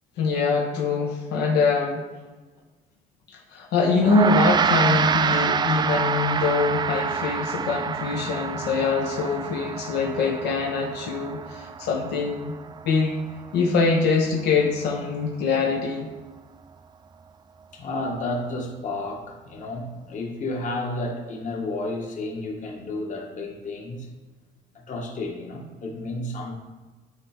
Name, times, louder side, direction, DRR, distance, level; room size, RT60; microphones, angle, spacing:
voice 1, 0.2-2.1 3.3-12.5 12.8-13.1 13.5-16.1, left 4 dB, 80° left, 0 dB, 1.1 m, -23 dB
Gong, 4.0-13.6, right 6 dB, 25° right, 0.3 m, -27 dB
voice 2, 17.7-24.1 24.9-26.5, left 2 dB, 45° left, 0 dB, 1.6 m, -31 dB
9.5 x 3.3 x 5.0 m, 1.3 s
cardioid pair, 110°, 17 cm